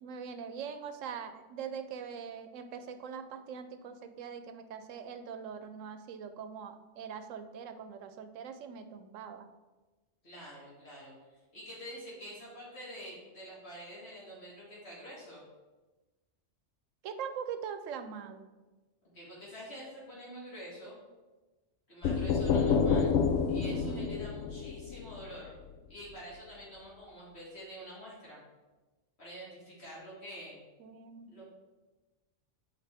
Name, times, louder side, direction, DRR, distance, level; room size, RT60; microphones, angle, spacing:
voice 1, 0.0-9.5 17.0-18.5 23.7-24.1 30.8-31.3, right 7 dB, 90° right, 9 dB, 1.0 m, -42 dB
voice 2, 10.2-15.5 19.1-21.0 21.9-23.2 23.5-25.6 25.9-28.4 29.2-30.6 31.3-31.4, equal, 60° left, -6 dB, 2.2 m, -47 dB
sound 1, 22.0-25.8, left 5 dB, 80° left, 0.9 m, -29 dB
8.5 x 4.6 x 3.4 m, 1.2 s
omnidirectional pair, 1.3 m